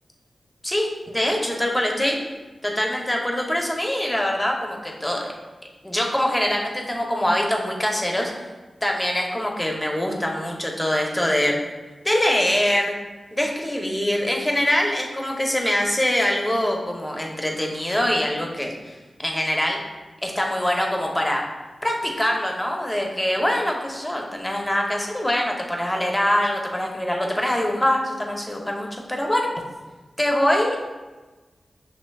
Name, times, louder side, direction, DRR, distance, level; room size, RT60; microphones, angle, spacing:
voice 1, 0.6-2.2 2.6-5.3 5.8-8.3 8.8-11.6 12.0-12.9 13.3-18.9 19.2-19.8 20.2-21.4 21.8-29.5 30.2-30.8, left 1 dB, 15° left, 0 dB, 0.7 m, -23 dB
6.3 x 2.9 x 2.3 m, 1.2 s
cardioid pair, 65°, 0 cm